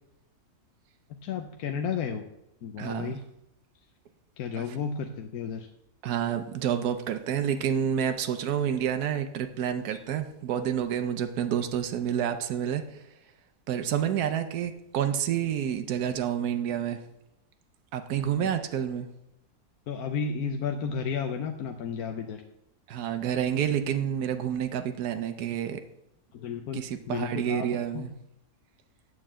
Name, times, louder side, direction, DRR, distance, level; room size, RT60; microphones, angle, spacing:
voice 1, 1.1-2.2 2.6-3.2 4.4-5.7 9.9-10.0 18.4-18.5 19.9-22.4 26.3-28.1, left 6 dB, 75° left, 5 dB, 1.1 m, -33 dB
voice 2, 2.8-3.1 6.0-13.0 13.7-17.0 17.9-19.1 22.9-25.8 26.7-28.1, right 9 dB, 80° right, 8 dB, 1.2 m, -29 dB
9.0 x 4.7 x 7.4 m, 0.87 s
omnidirectional pair, 1.6 m